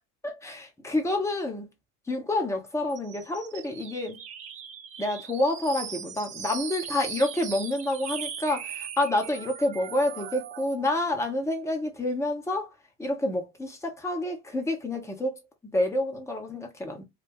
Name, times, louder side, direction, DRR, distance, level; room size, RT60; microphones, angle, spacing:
voice 1, 0.2-1.7 2.1-4.2 5.0-12.7 13.0-15.4 15.7-17.0, left 1 dB, 5° left, 1.0 m, -28 dB
sound 1, 2.9-10.9, right 7 dB, 20° right, 0.3 m, -39 dB
3.2 x 2.3 x 3.7 m
figure-of-eight pair, 75°, 47 cm